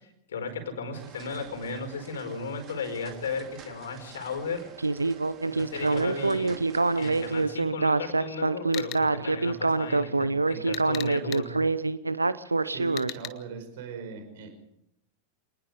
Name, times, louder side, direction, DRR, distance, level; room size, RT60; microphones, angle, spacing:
voice 1, 0.3-4.7 5.4-6.5 7.0-11.5, left 4 dB, 65° left, 6 dB, 4.9 m, -35 dB
sound 1, 0.9-7.5, right 7 dB, 35° right, 3.7 m, -49 dB
Speech synthesizer, 4.8-13.1, right 3 dB, 80° right, 0.8 m, -25 dB
voice 2, 5.7-6.5 12.6-14.5, right 6 dB, 55° right, 6 dB, 5.1 m, -40 dB
sound 2, 8.7-9.0 10.7-11.4 13.0-13.3, left 13 dB, 35° left, 1.5 m, -37 dB
26.5 x 19.5 x 5.1 m, 0.79 s
figure-of-eight pair, 90°, 0 cm